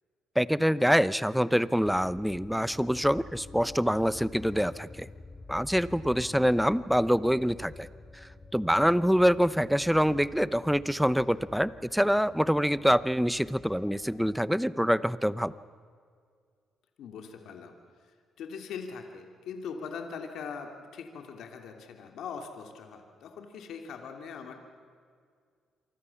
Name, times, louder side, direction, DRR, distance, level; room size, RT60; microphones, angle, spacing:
voice 1, 0.4-5.1 5.5-7.9 8.5-15.5, equal, ahead, 16 dB, 0.8 m, -25 dB
sound 1, 1.8-14.4, left 3 dB, 30° left, 3.1 m, -49 dB
voice 2, 6.2-6.5 17.0-17.7 18.0-24.6, left 6 dB, 75° left, 4 dB, 2.9 m, -41 dB
27.0 x 24.5 x 7.2 m, 2.1 s
cardioid pair, 90°, 0 cm